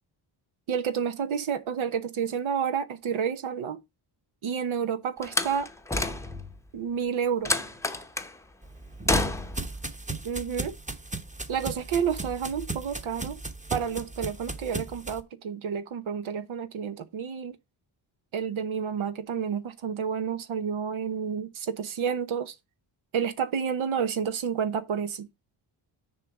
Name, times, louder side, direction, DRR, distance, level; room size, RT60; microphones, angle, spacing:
voice 1, 0.7-3.8 4.4-5.7 6.7-7.6 10.2-10.7 11.5-13.4 13.7-17.6 18.3-22.5 23.1-25.3, right 7 dB, 75° right, 1.0 m, -30 dB
Slam, 5.2-6.6 7.5-8.3 9.1-9.7, left 2 dB, 5° left, 0.8 m, -28 dB
sound 1, 8.6-15.2, right 3 dB, 15° right, 1.1 m, -37 dB
6.8 x 4.0 x 5.8 m
cardioid pair, 105°, 49 cm